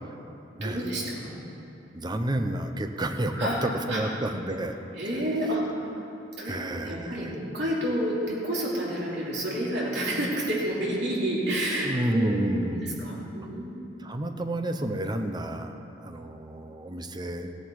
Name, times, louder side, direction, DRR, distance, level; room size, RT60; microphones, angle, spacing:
voice 1, 0.6-1.3 3.3-3.6 3.9-4.0 5.0-5.9 6.4-12.4 12.7-14.0, right 1 dB, 65° right, -5 dB, 3.3 m, -29 dB
voice 2, 1.9-4.8 6.4-7.3 11.8-13.1 14.0-17.5, right 1 dB, 25° right, 6 dB, 0.7 m, -30 dB
16.0 x 10.5 x 4.8 m, 2.8 s
head